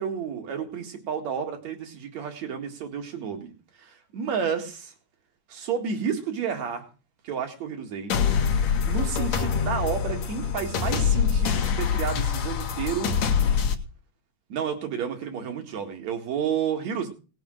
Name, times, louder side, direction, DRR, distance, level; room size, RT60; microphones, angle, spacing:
voice 1, 0.0-3.5 3.8-4.9 5.5-6.8 7.2-8.1 8.8-13.1 14.5-17.1, right 7 dB, 70° right, 5 dB, 3.3 m, -31 dB
sound 1, 8.1-13.7, left 7 dB, 70° left, 2.5 m, -24 dB
18.5 x 7.1 x 6.4 m, 0.35 s
omnidirectional pair, 3.3 m